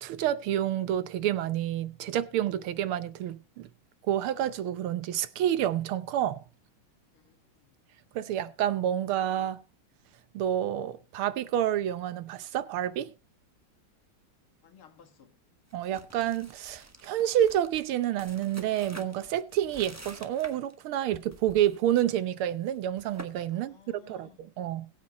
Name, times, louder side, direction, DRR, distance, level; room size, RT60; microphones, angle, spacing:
voice 1, 0.0-3.7 4.0-6.4 8.2-9.6 10.3-13.1 15.7-24.9, right 11 dB, 90° right, 1.7 m, -29 dB
voice 2, 7.1-7.8 14.6-15.4 23.5-24.4, left 8 dB, 80° left, 2.5 m, -58 dB
sound 1, 15.7-20.8 21.1-21.8 22.1-22.3 22.7-23.3, right 1 dB, 15° right, 0.7 m, -48 dB
21.0 x 8.4 x 2.9 m
omnidirectional pair, 2.3 m